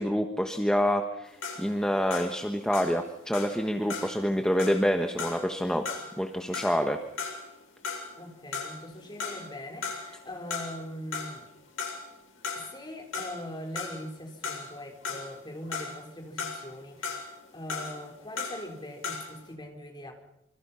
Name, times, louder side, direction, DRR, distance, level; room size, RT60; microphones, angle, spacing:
voice 1, 0.0-5.8 6.2-7.0, equal, 5° left, 5 dB, 1.3 m, -27 dB
sound 1, 1.3-8.3 8.5-9.6 9.8-10.9 11.1-19.5, left 4 dB, 75° left, 7.5 m, -37 dB
voice 2, 8.2-11.5 12.5-20.1, left 1 dB, 20° left, 2 dB, 4.5 m, -41 dB
26.5 x 26.0 x 5.8 m, 0.82 s
head